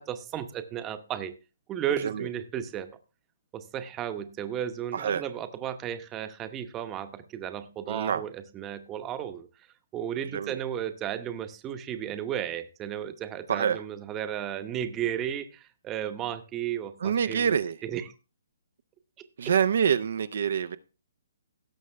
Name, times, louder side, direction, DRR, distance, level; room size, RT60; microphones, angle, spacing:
voice 1, 0.1-1.3 1.7-2.9 3.5-9.5 9.9-18.1 19.4-19.5, right 10 dB, 15° right, 10 dB, 0.9 m, -34 dB
voice 2, 4.9-5.2 7.9-8.2 10.3-10.6 13.5-13.8 17.0-17.8 19.4-20.8, right 7 dB, 60° right, 12 dB, 0.6 m, -26 dB
17.0 x 6.5 x 3.3 m, 0.32 s
hypercardioid pair, 155°, 0 cm